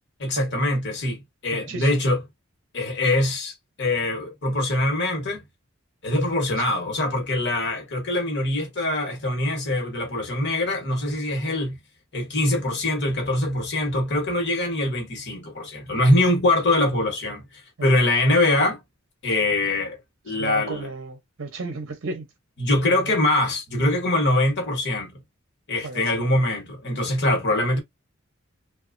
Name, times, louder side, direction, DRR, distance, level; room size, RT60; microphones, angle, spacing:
voice 1, 0.2-2.2 2.7-5.4 6.0-11.8 12.1-17.4 17.8-18.8 19.2-20.0 20.2-20.9 22.6-25.1 25.7-27.8, left 1 dB, 55° left, 1.2 m, -23 dB
voice 2, 1.5-2.0 17.8-17.9 20.4-22.3 22.8-23.1 25.8-26.0, right 3 dB, 60° right, 0.6 m, -34 dB
2.9 x 2.3 x 2.5 m
head